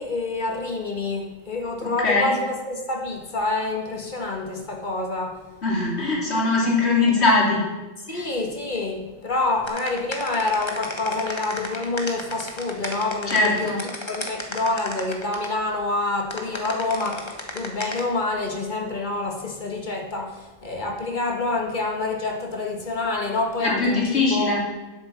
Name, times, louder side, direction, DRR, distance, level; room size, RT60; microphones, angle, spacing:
voice 1, 0.0-5.4 6.6-6.7 8.1-13.7 14.1-24.6, left 2 dB, 45° left, 3 dB, 1.8 m, -27 dB
voice 2, 1.8-2.3 5.6-7.6 8.1-8.2 13.3-13.8 23.6-24.6, left 3 dB, 65° left, -3 dB, 3.1 m, -21 dB
sound 1, 9.7-15.5 16.3-18.0, left 1 dB, 25° left, 1.5 m, -33 dB
10.0 x 8.2 x 7.4 m, 1.1 s
omnidirectional pair, 1.2 m